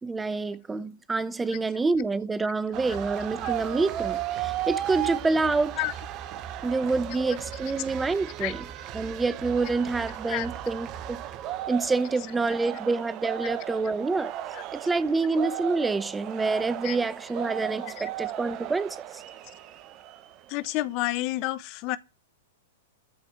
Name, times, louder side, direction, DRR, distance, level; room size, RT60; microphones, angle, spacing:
voice 1, 0.0-5.8 6.6-8.6 8.9-11.2 11.7-14.3 14.7-19.2, right 3 dB, 10° right, 0.9 m, -27 dB
sound 1, 2.7-20.5, right 12 dB, 35° right, 1.2 m, -35 dB
voice 2, 20.5-22.0, left 17 dB, 40° left, 0.6 m, -30 dB
14.0 x 4.8 x 7.4 m
figure-of-eight pair, 100°, 0 cm